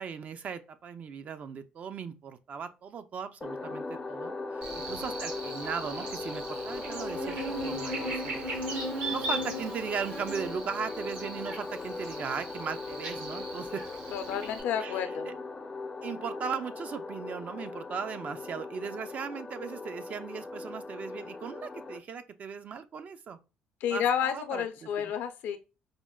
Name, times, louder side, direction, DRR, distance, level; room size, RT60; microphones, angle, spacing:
voice 1, 0.0-8.8 9.1-13.8 14.8-15.3 16.0-23.4 23.9-25.1, right 6 dB, 50° right, 0.4 m, -38 dB
sound 1, 3.4-22.0, left 3 dB, 20° left, 0.4 m, -39 dB
Buzz, 4.6-14.6, right 1 dB, 75° right, 1.3 m, -38 dB
voice 2, 14.1-15.3 23.8-25.6, left 8 dB, 75° left, 0.5 m, -30 dB
4.9 x 2.1 x 2.2 m
supercardioid pair, 85°, 3 cm